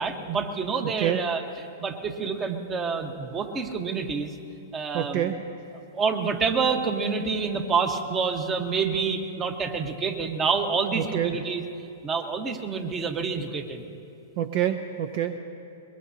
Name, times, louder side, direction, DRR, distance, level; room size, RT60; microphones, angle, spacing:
voice 1, 0.0-1.4 1.8-4.3 4.7-5.3 5.9-11.6 12.0-13.8, right 5 dB, 25° right, 6 dB, 1.2 m, -27 dB
voice 2, 4.9-5.4 10.9-11.4 14.4-15.4, right 10 dB, 55° right, 9 dB, 0.6 m, -26 dB
22.5 x 21.5 x 2.8 m, 2.7 s
hypercardioid pair, 120°, 0 cm